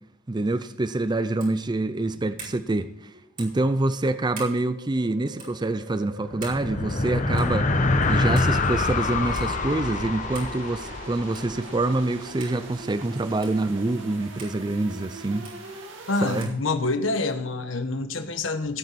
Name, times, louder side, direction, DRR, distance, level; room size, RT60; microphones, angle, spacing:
voice 1, 0.3-3.1 3.4-15.5 16.2-16.5, right 2 dB, 20° right, 0.5 m, -26 dB
sound 1, 1.4-1.6 2.4-2.6 3.4-3.6 4.3-4.6 5.4-5.5 6.4-6.6 7.4-7.6 8.4-8.5 9.4-9.5 10.3-10.6 11.3-11.6 12.4-12.6 13.4-13.6 14.4-14.6 15.4-15.6 16.4-16.6, right 4 dB, 45° right, 4.8 m, -42 dB
sound 2, 1.7-16.4, right 2 dB, 70° right, 2.5 m, -42 dB
sound 3, 6.2-11.9, left 3 dB, 40° left, 1.0 m, -25 dB
voice 2, 16.1-18.8, left 3 dB, 75° left, 1.2 m, -27 dB
16.5 x 9.3 x 4.2 m
head